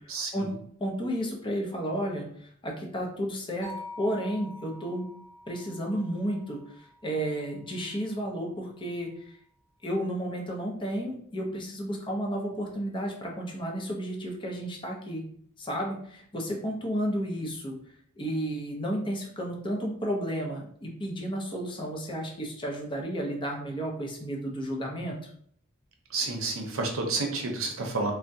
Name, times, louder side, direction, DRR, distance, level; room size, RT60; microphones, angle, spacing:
voice 1, 0.1-0.5 26.1-28.1, right 3 dB, 75° right, 2 dB, 0.7 m, -30 dB
voice 2, 0.8-2.3 2.6-3.7 4.0-5.1 5.5-9.3 9.8-15.2 15.6-17.8 18.2-25.3, equal, 25° left, 0 dB, 0.6 m, -32 dB
sound 1, 3.6-7.8, left 1 dB, 85° left, 0.9 m, -46 dB
3.4 x 2.1 x 2.7 m, 0.63 s
head